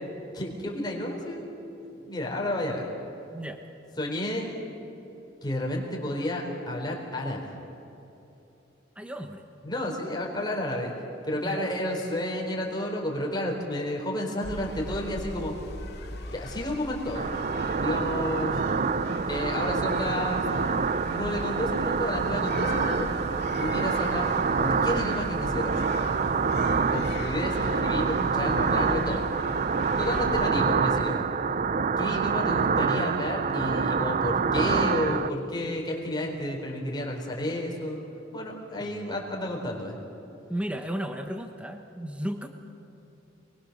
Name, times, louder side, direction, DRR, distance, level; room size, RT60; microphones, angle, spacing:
voice 1, 0.3-1.5 2.0-2.8 4.0-4.5 5.4-7.5 9.6-10.9 11.2-15.5 16.3-17.4 17.8-18.6 19.3-20.4 21.1-23.1 23.6-24.3 24.6-25.8 26.9-29.3 30.0-31.2 32.0-38.0 38.3-40.0, left 1 dB, 20° left, -1 dB, 4.2 m, -31 dB
voice 2, 9.0-9.4 11.4-11.7 30.1-30.3 38.8-39.2 39.5-39.6 40.5-42.5, equal, 5° right, 5 dB, 1.0 m, -35 dB
sound 1, 14.4-30.5, left 2 dB, 55° left, 2.4 m, -39 dB
sound 2, 17.1-35.3, right 5 dB, 40° right, 0.5 m, -26 dB
29.0 x 21.5 x 6.6 m, 2.9 s
head